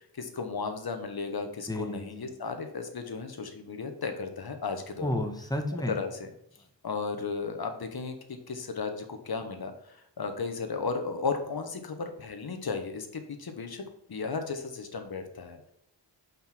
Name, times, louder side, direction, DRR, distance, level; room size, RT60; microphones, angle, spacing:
voice 1, 0.0-5.1 5.9-6.3 6.8-13.8 14.1-15.7, left 4 dB, 55° left, 6 dB, 1.3 m, -35 dB
voice 2, 1.7-2.3 5.0-5.9, left 1 dB, 10° left, 4 dB, 1.2 m, -32 dB
6.0 x 5.4 x 4.5 m, 0.76 s
wide cardioid pair, 100°, 44 cm